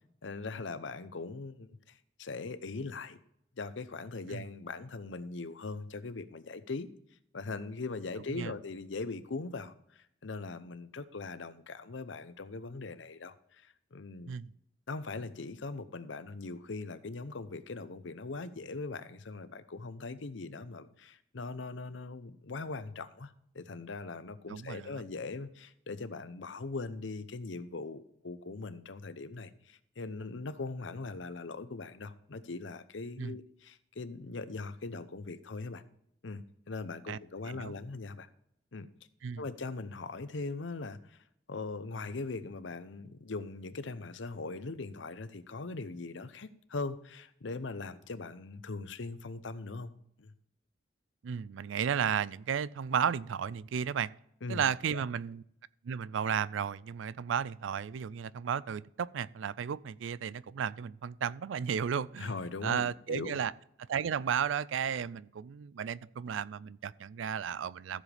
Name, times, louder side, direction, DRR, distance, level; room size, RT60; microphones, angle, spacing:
voice 1, 0.2-3.2 3.6-6.9 7.3-14.3 14.9-35.8 36.2-38.3 38.7-38.9 39.4-49.9 50.2-50.3 54.4-55.0 62.2-63.4, left 3 dB, 75° left, 0.7 m, -41 dB
voice 2, 24.5-25.0 33.2-33.4 37.1-37.2 37.5-37.8 39.2-39.4 51.2-54.1 54.5-55.4 55.8-62.3 62.6-63.5 63.9-68.0, right 7 dB, 80° right, 0.4 m, -33 dB
14.5 x 7.4 x 3.4 m
head